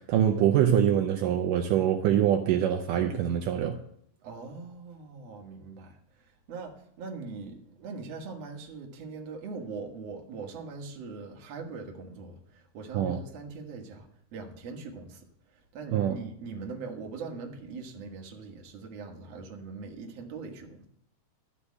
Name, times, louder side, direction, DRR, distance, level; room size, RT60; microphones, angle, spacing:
voice 1, 0.0-3.8 12.9-13.2 15.9-16.2, right 10 dB, 80° right, 2.2 m, -24 dB
voice 2, 4.2-20.9, right 4 dB, 55° right, 2.2 m, -41 dB
12.5 x 5.1 x 8.3 m
omnidirectional pair, 3.9 m